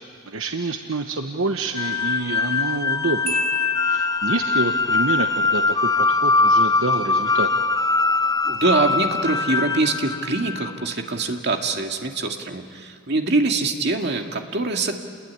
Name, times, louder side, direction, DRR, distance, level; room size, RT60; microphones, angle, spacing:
voice 1, 0.3-3.4 3.8-7.5, right 2 dB, 75° right, 5 dB, 1.1 m, -27 dB
sound 1, 1.8-10.9, left 3 dB, 20° left, 0.6 m, -22 dB
Marimba xylophone, 3.3-4.7, left 2 dB, 30° right, 2.5 m, -29 dB
voice 2, 8.4-15.0, right 3 dB, 55° right, 3 dB, 2.1 m, -24 dB
29.5 x 21.0 x 9.7 m, 2.3 s
head